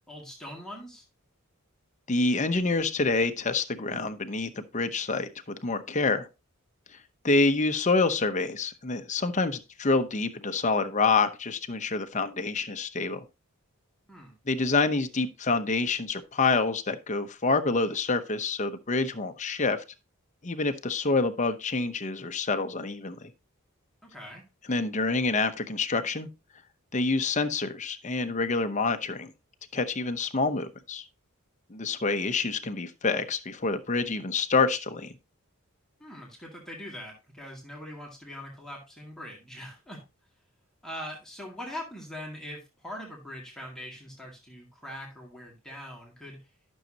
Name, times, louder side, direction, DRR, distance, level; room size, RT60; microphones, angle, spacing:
voice 1, 0.1-1.0 14.1-14.3 24.0-24.4 36.0-40.0 40.8-46.5, equal, ahead, -2 dB, 2.2 m, -42 dB
voice 2, 2.1-6.3 7.2-13.2 14.5-19.8 20.4-23.3 24.7-26.3 26.9-29.3 29.7-31.0 31.7-35.1, left 3 dB, 35° left, 9 dB, 0.8 m, -27 dB
12.5 x 6.4 x 2.8 m, 0.27 s
head